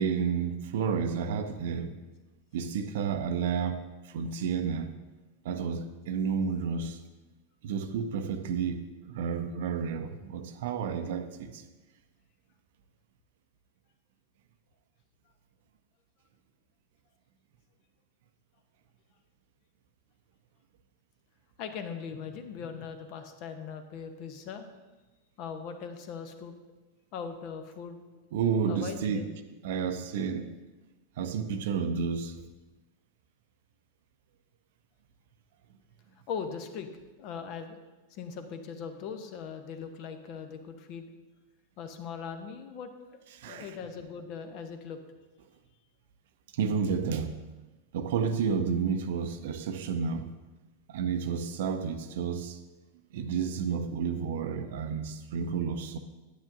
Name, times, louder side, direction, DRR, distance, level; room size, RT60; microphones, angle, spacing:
voice 1, 0.0-1.9 2.5-3.8 4.1-4.9 5.4-7.0 7.6-11.6 28.3-29.2 29.6-30.5 31.2-32.3 43.4-43.7 46.5-47.3 47.9-50.3 50.9-52.6 53.1-56.0, right 6 dB, 55° right, 8 dB, 0.6 m, -31 dB
voice 2, 21.6-24.7 25.4-26.6 27.1-28.0 28.7-29.3 36.3-36.9 37.2-37.8 38.1-41.1 41.8-45.0, left 6 dB, 40° left, 8 dB, 0.8 m, -40 dB
9.4 x 9.4 x 2.6 m, 1.2 s
figure-of-eight pair, 90°, 0 cm